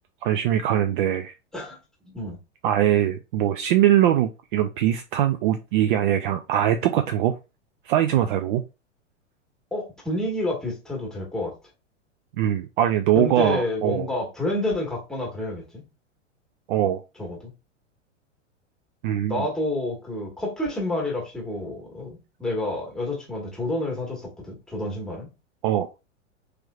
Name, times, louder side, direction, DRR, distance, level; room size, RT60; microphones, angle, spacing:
voice 1, 0.2-1.3 2.6-7.3 7.9-8.6 12.4-14.1 16.7-17.0 19.0-19.5 25.6-25.9, right 11 dB, 45° right, 0.4 m, -22 dB
voice 2, 2.0-2.4 9.7-11.5 13.1-15.8 17.2-17.5 19.3-25.3, left 1 dB, ahead, 1.5 m, -29 dB
3.2 x 3.1 x 2.4 m
figure-of-eight pair, 100°, 37 cm